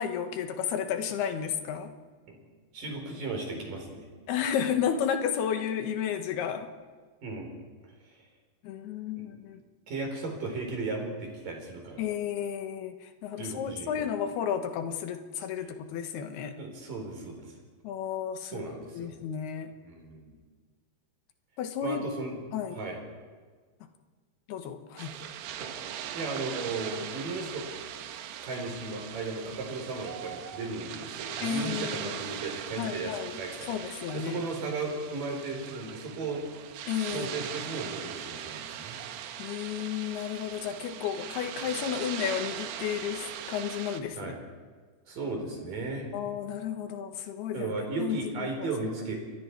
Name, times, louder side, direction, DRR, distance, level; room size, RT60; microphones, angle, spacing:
voice 1, 0.0-1.9 4.3-6.7 8.6-9.6 12.0-16.5 17.8-19.7 21.6-22.0 22.5-22.8 24.5-25.1 31.4-32.1 32.8-33.3 33.7-34.4 36.9-37.4 39.4-44.3 46.1-48.7, left 8 dB, 75° left, 7 dB, 3.3 m, -32 dB
voice 2, 2.7-4.1 7.2-7.5 8.0-8.2 9.1-9.2 9.9-12.1 13.4-14.1 16.6-17.6 18.5-19.2 19.8-20.4 21.8-22.4 22.7-23.0 25.6-25.7 26.1-27.7 28.4-36.4 37.1-39.0 44.2-44.3 45.1-46.1 47.5-49.1, right 3 dB, 55° right, 2 dB, 5.7 m, -36 dB
sound 1, 25.0-44.0, right 10 dB, 85° right, 3.2 m, -40 dB
29.5 x 22.5 x 4.7 m, 1.5 s
omnidirectional pair, 4.7 m